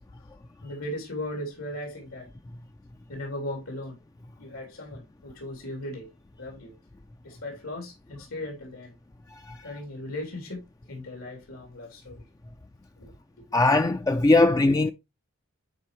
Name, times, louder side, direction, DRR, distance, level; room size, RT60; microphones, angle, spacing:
voice 1, 0.6-2.3 3.1-4.0 4.4-6.1 6.4-6.7 7.2-8.9 9.6-10.6 10.9-12.2 13.0-13.1, left 1 dB, 90° left, 3.3 m, -37 dB
voice 2, 13.5-14.9, left 2 dB, 15° left, 0.3 m, -20 dB
10.0 x 4.5 x 3.2 m
head